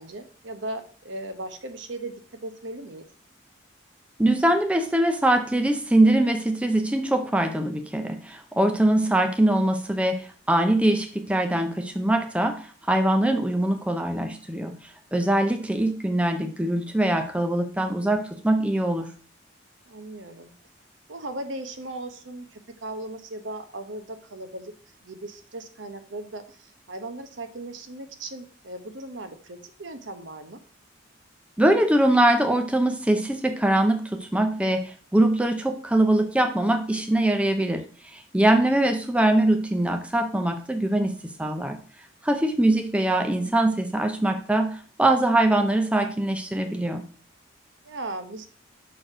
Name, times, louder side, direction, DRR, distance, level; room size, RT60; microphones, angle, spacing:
voice 1, 0.0-2.1 2.4-3.0 19.9-20.5 21.1-24.7 25.0-30.6 47.8-48.5, right 2 dB, 70° right, 7 dB, 1.0 m, -37 dB
voice 2, 4.2-14.7 15.1-19.1 31.6-41.8 42.2-47.0, right 1 dB, 5° right, 5 dB, 0.5 m, -22 dB
6.3 x 4.5 x 4.9 m, 0.42 s
head